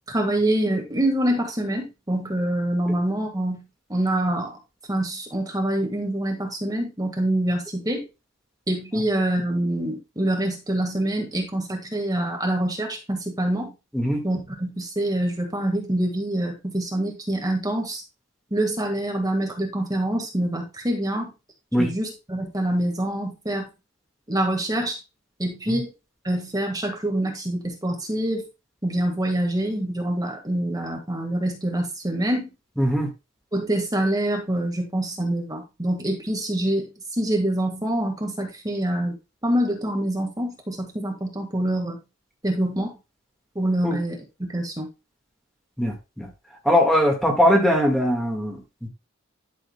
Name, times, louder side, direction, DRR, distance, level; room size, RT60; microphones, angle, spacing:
voice 1, 0.1-3.6 3.9-4.6 4.9-8.1 8.7-13.7 14.2-18.0 18.5-21.3 21.8-23.6 24.3-25.0 25.4-25.9 26.2-28.5 28.8-32.5 33.5-39.2 39.4-42.0 42.4-42.9 43.5-44.9, right 1 dB, 20° right, 2 dB, 1.7 m, -25 dB
voice 2, 32.8-33.1 43.8-44.0 45.8-46.3 46.6-48.9, equal, ahead, 1 dB, 1.7 m, -21 dB
11.5 x 6.5 x 2.2 m, 0.26 s
head